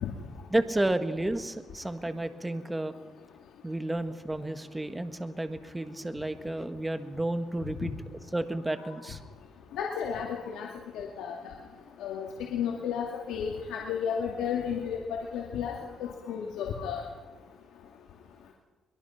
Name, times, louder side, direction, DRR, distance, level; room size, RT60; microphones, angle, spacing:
voice 1, 0.5-2.9 3.6-9.2, right 1 dB, 15° right, 9 dB, 1.6 m, -31 dB
voice 2, 9.8-10.7 10.9-11.4 12.0-15.0 15.3-15.7 16.0-17.0, left 7 dB, 90° left, -1 dB, 2.2 m, -32 dB
23.0 x 22.5 x 5.9 m, 1.3 s
cardioid pair, 90°, 0 cm